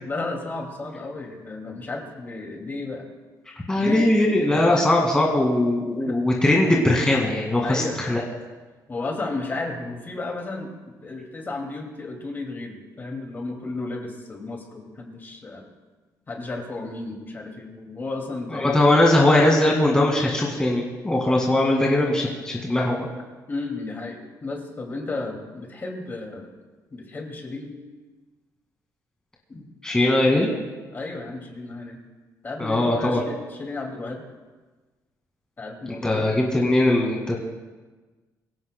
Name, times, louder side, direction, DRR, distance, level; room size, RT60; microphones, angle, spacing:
voice 1, 0.0-3.1 3.8-4.1 4.5-4.9 6.0-6.2 7.6-8.0 8.9-10.7 11.0-15.6 16.3-18.9 21.3-21.4 22.3-22.4 23.5-26.5 26.9-27.8 29.5-29.7 30.9-32.0 32.4-34.2 35.6-36.3, left 3 dB, 30° left, 2 dB, 2.3 m, -33 dB
voice 2, 3.7-8.2 18.5-23.1 29.8-30.5 32.6-33.2 35.9-37.4, left 1 dB, 10° left, -2 dB, 2.0 m, -20 dB
24.5 x 16.5 x 2.2 m, 1.3 s
cardioid pair, 145°, 7 cm